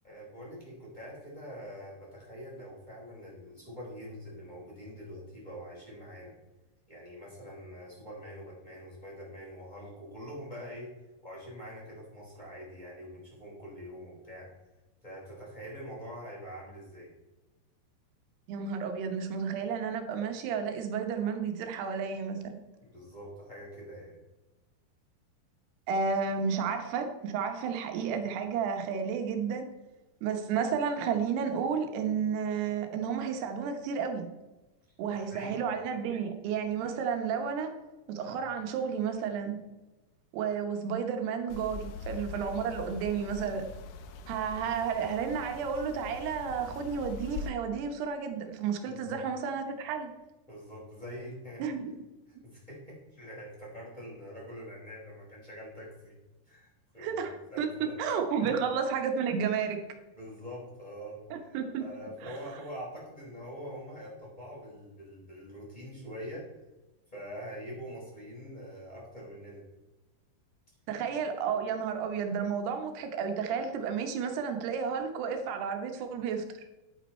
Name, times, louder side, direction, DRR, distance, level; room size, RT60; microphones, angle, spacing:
voice 1, 0.0-6.3 6.9-10.9 11.2-14.5 15.0-17.1 22.8-24.2 35.1-35.6 48.9-49.2 50.5-51.6 52.3-56.2 56.5-57.9 58.4-58.5 60.1-61.2 61.8-66.5 67.1-69.6, equal, 10° left, -5 dB, 3.9 m, -44 dB
voice 2, 18.5-22.5 25.9-29.6 30.2-34.3 35.0-37.7 38.1-39.6 40.3-43.6 44.3-50.1 51.6-51.9 57.0-59.8 61.3-61.9 62.2-62.4 70.9-76.4, right 6 dB, 90° right, 5 dB, 3.2 m, -32 dB
sound 1, 41.5-47.5, left 5 dB, 80° left, 1.9 m, -43 dB
10.5 x 8.4 x 4.4 m, 1.1 s
omnidirectional pair, 4.6 m